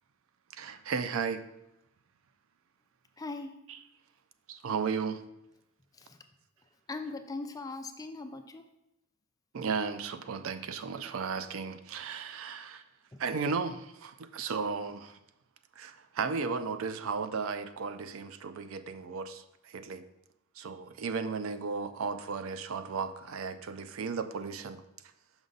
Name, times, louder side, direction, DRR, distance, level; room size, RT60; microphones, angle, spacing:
voice 1, 0.5-1.5 3.7-3.8 4.5-5.2 9.5-12.8 13.2-15.2 15.8-20.0 20.6-24.8, right 5 dB, 70° right, 11 dB, 0.4 m, -35 dB
voice 2, 3.2-3.5 6.1-6.2 6.9-8.6, left 3 dB, 15° left, 7 dB, 0.4 m, -39 dB
6.0 x 5.3 x 3.9 m, 0.88 s
head